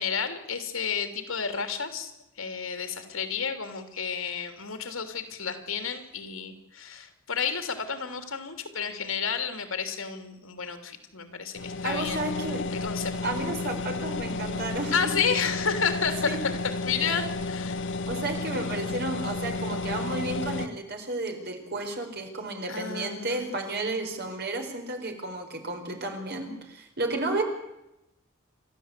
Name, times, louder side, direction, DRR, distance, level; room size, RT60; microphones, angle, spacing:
voice 1, 0.0-2.1 2.4-12.3 12.8-13.3 14.9-17.8 22.7-23.4, left 6 dB, 80° left, 7 dB, 3.1 m, -31 dB
sound 1, 11.5-20.7, left 3 dB, 65° left, 1.3 m, -32 dB
voice 2, 11.8-12.6 13.2-15.1 16.3-16.4 18.1-27.4, right 2 dB, 50° right, 4 dB, 4.4 m, -32 dB
29.0 x 13.5 x 8.4 m, 0.93 s
head